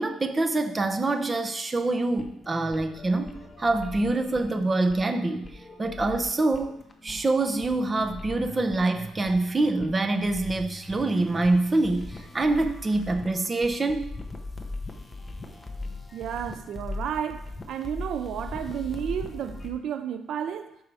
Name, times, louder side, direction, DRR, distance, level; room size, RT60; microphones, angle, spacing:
voice 1, 0.0-5.5 5.8-6.8 7.0-14.0, right 2 dB, 20° right, 0.8 m, -25 dB
sound 1, 2.2-19.7, left 2 dB, 20° left, 1.0 m, -40 dB
voice 2, 16.1-20.8, right 9 dB, 65° right, 0.5 m, -32 dB
13.5 x 5.5 x 3.4 m
cardioid pair, 135°, 0 cm